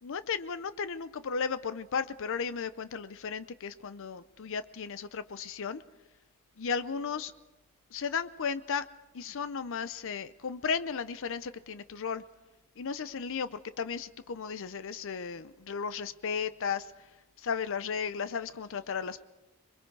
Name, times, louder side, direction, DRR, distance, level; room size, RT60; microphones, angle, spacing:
voice 1, 0.0-5.8 6.6-7.3 7.9-8.9 9.1-12.2 12.8-16.9 17.4-19.2, left 6 dB, 65° left, 13 dB, 0.6 m, -35 dB
27.0 x 21.5 x 4.7 m, 1.1 s
head